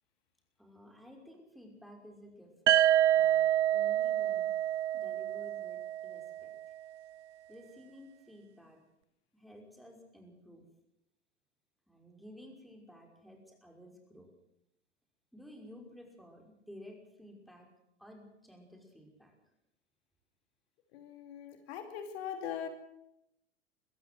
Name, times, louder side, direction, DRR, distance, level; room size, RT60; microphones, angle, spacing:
voice 1, 0.6-2.5 3.2-4.5 4.9-6.5 7.5-8.8 9.3-10.7 11.9-14.3 15.3-17.7 18.0-19.3, equal, ahead, 2 dB, 5.5 m, -53 dB
sound 1, 2.7-6.5, right 12 dB, 75° right, 0.7 m, -28 dB
voice 2, 20.9-22.7, left 8 dB, 60° left, 7 dB, 2.8 m, -41 dB
23.0 x 15.5 x 7.8 m, 0.80 s
hypercardioid pair, 95°, 36 cm